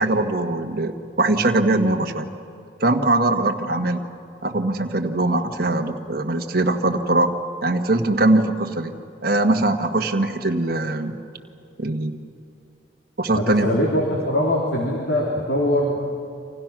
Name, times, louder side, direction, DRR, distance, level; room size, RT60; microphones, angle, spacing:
voice 1, 0.0-2.3 2.8-4.1 4.4-7.3 7.6-8.9 9.2-11.1 11.8-12.2 13.2-13.8, right 2 dB, 55° right, 4 dB, 1.5 m, -21 dB
voice 2, 13.3-16.0, equal, 65° left, -2 dB, 3.6 m, -22 dB
29.0 x 26.0 x 6.1 m, 2.5 s
head